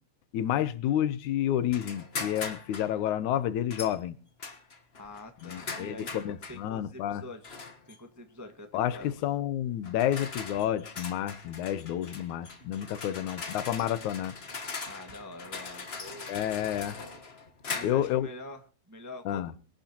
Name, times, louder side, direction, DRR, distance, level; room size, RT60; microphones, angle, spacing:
voice 1, 0.3-4.2 5.4-7.2 8.7-14.4 16.3-17.0 17.8-18.3 19.3-19.5, left 11 dB, 85° left, 2.4 m, -30 dB
sound 1, 1.7-2.9 3.7-4.0 4.4-6.6 7.4-8.0 9.0-9.2 9.8-18.2, left 4 dB, 50° left, 0.7 m, -41 dB
voice 2, 4.9-9.2 14.9-16.8 17.7-19.4, left 1 dB, 10° right, 0.9 m, -46 dB
23.0 x 12.0 x 2.9 m
omnidirectional pair, 3.3 m